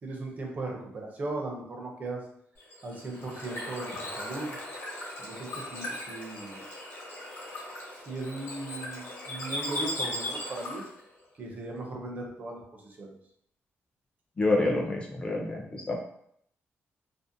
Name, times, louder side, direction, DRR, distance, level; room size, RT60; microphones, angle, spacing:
voice 1, 0.0-2.2 2.8-4.6 5.2-6.7 7.5-7.6 8.1-10.8 11.4-13.2, right 2 dB, 35° right, 0 dB, 0.5 m, -38 dB
Bird / Water, 2.6-11.0, left 1 dB, 75° left, 0.9 m, -38 dB
voice 2, 14.4-15.9, left 2 dB, 25° left, 0 dB, 0.4 m, -27 dB
2.5 x 2.0 x 2.6 m, 0.70 s
wide cardioid pair, 155°, 5 cm